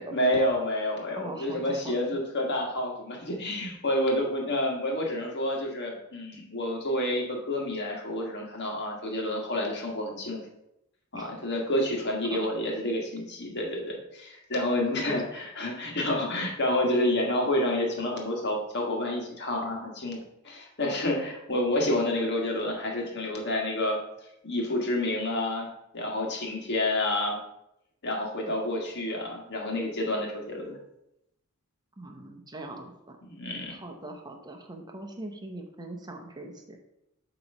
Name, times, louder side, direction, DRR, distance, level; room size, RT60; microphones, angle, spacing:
voice 1, 0.1-10.4 11.1-20.2 20.4-24.0 24.4-25.7 25.9-27.4 28.0-30.8 33.2-33.8, left 1 dB, 50° left, 0 dB, 1.5 m, -29 dB
voice 2, 1.2-1.9 11.1-11.3 12.3-12.4 14.8-15.2 32.0-33.2 33.7-36.8, right 2 dB, 20° right, 3 dB, 0.8 m, -41 dB
7.6 x 3.0 x 5.3 m, 0.83 s
head